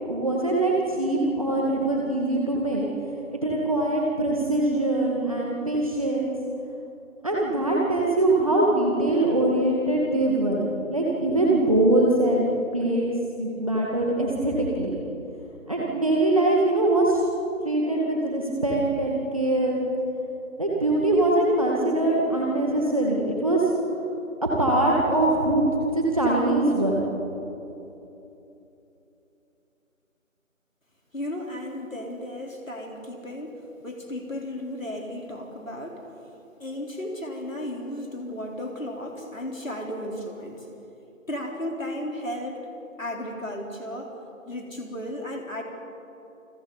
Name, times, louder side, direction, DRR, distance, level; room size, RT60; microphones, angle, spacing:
voice 1, 0.1-2.9 3.4-6.3 7.2-13.1 13.4-15.0 15.7-17.2 17.6-19.8 20.6-23.7 24.6-25.7 26.0-27.0, right 2 dB, 25° right, -3 dB, 1.9 m, -23 dB
voice 2, 31.1-36.0 36.6-40.7 41.3-42.7 43.0-45.6, left 1 dB, 70° left, 0 dB, 3.8 m, -34 dB
28.5 x 23.5 x 4.0 m, 3.0 s
figure-of-eight pair, 165°, 41 cm